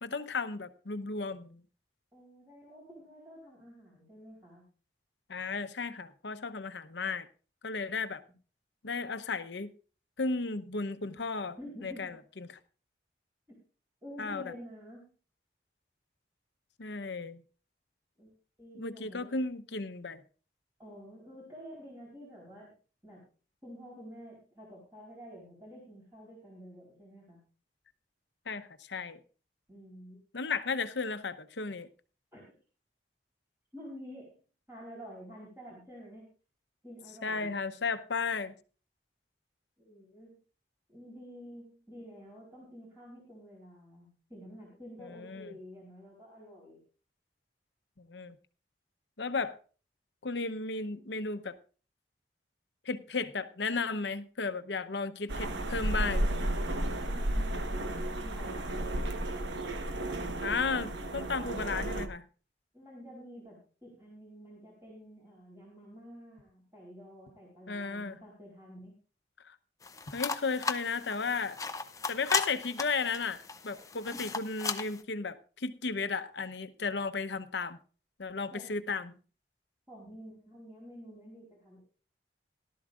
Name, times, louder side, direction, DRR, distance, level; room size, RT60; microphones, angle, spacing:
voice 1, 0.0-1.6 5.3-7.3 7.6-8.2 8.8-9.7 10.2-12.6 14.2-14.5 16.8-17.4 18.8-20.2 28.5-29.2 30.3-31.9 37.2-38.5 45.0-45.5 48.0-48.4 49.2-49.6 50.2-51.6 52.9-56.3 60.4-62.3 67.7-68.2 69.5-69.6 70.1-71.6 72.1-73.4 73.6-77.8 78.2-79.1, left 4 dB, 80° left, 0.8 m, -34 dB
voice 2, 2.1-4.6 11.6-12.2 13.5-13.6 14.0-15.1 18.2-18.3 18.6-19.4 20.8-22.7 23.0-23.2 23.6-27.4 29.7-30.2 32.3-32.4 33.7-34.3 34.7-36.3 36.8-37.5 39.8-40.3 40.9-46.8 57.0-57.6 58.1-59.0 62.7-68.9 73.8-73.9 74.1-74.4 78.5-79.0 79.9-81.8, equal, 15° right, 3.9 m, -49 dB
sound 1, 55.3-62.1, right 1 dB, 90° right, 1.2 m, -33 dB
sound 2, 69.8-75.0, left 4 dB, 20° left, 0.5 m, -36 dB
17.5 x 12.0 x 2.5 m
head